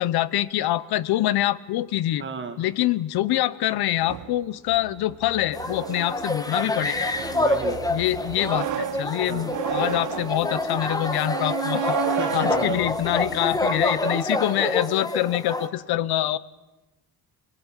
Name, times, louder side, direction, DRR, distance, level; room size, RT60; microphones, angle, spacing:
voice 1, 0.0-2.2 2.6-7.1 7.9-12.0 12.3-16.4, left 14 dB, 75° left, 17 dB, 1.0 m, -25 dB
voice 2, 2.2-2.6 7.3-7.8 9.3-9.5 12.1-12.8, right 5 dB, 30° right, 8 dB, 2.2 m, -34 dB
sound 1, 4.0-14.0, right 10 dB, 55° right, 0.9 m, -33 dB
sound 2, 5.5-15.7, left 2 dB, 10° left, 1.4 m, -27 dB
23.0 x 22.5 x 9.0 m, 1.0 s
cardioid pair, 165°, 38 cm